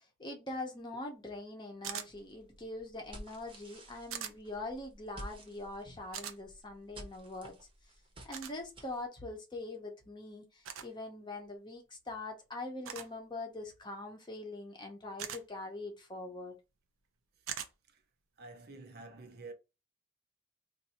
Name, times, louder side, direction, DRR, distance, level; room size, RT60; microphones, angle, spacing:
voice 1, 0.0-7.6 8.2-16.6, left 2 dB, 20° left, 0.9 m, -43 dB
sound 1, 1.8-2.1 4.1-4.3 6.1-6.4 8.3-8.5 10.6-10.9 12.9-13.1 15.2-15.4 17.5-17.7, right 9 dB, 90° right, 0.6 m, -40 dB
sound 2, 2.1-9.1, right 1 dB, 25° right, 1.0 m, -52 dB
voice 2, 18.4-19.5, right 3 dB, 50° right, 0.7 m, -49 dB
2.6 x 2.6 x 4.2 m
head